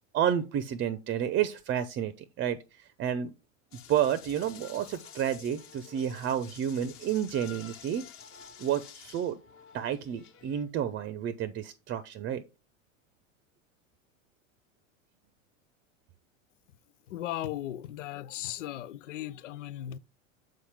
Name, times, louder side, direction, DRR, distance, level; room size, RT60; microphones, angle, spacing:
voice 1, 0.1-3.3 3.9-8.1 8.6-9.4 9.7-12.4, right 9 dB, 30° right, 0.7 m, -30 dB
sound 1, 3.7-10.6, left 8 dB, 30° left, 1.4 m, -50 dB
voice 2, 17.1-20.0, left 13 dB, 60° left, 0.7 m, -37 dB
7.7 x 5.6 x 3.5 m
figure-of-eight pair, 80°, 41 cm